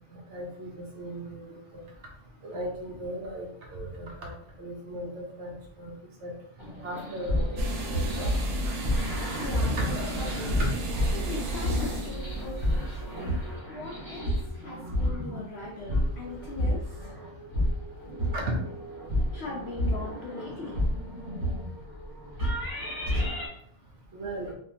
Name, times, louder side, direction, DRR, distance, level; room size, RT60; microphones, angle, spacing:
voice 1, 0.1-1.8 2.4-4.3 4.6-5.9 6.2-6.3 6.8-8.3 9.6-10.4 18.3-18.4 24.1-24.5, right 1 dB, 60° right, 0 dB, 0.8 m, -37 dB
sound 1, 6.6-23.5, equal, 15° right, 0.9 m, -31 dB
sound 2, 7.6-13.5, right 1 dB, 80° right, 1.1 m, -32 dB
voice 2, 9.4-10.7 11.1-13.3 13.7-17.1 19.1-20.9, left 3 dB, 65° left, -2 dB, 0.6 m, -40 dB
3.5 x 2.4 x 2.7 m, 0.68 s
omnidirectional pair, 1.5 m